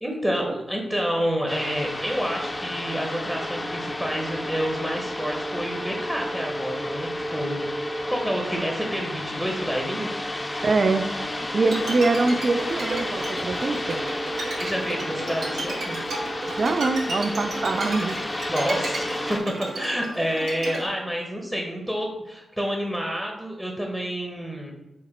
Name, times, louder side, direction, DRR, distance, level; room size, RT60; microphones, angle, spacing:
voice 1, 0.0-10.1 14.6-16.0 18.5-19.4 19.7-24.7, equal, 10° right, 0 dB, 0.8 m, -29 dB
sound 1, 1.5-19.4, left 1 dB, 25° left, 0.5 m, -31 dB
voice 2, 10.6-11.1 11.5-14.0 16.5-18.3, right 3 dB, 55° right, 9 dB, 0.3 m, -24 dB
Bowed string instrument, 11.6-20.9, right 2 dB, 85° right, 1.3 m, -33 dB
4.8 x 2.1 x 4.2 m, 0.95 s
cardioid pair, 65°, 0 cm